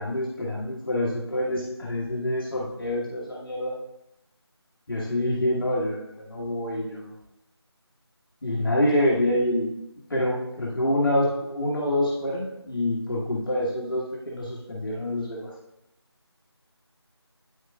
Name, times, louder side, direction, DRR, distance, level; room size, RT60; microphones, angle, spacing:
voice 1, 0.0-3.7 4.9-7.1 8.4-9.7 10.1-15.5, left 1 dB, 55° left, -5 dB, 1.5 m, -26 dB
8.9 x 6.4 x 2.3 m, 0.86 s
figure-of-eight pair, 170°, 14 cm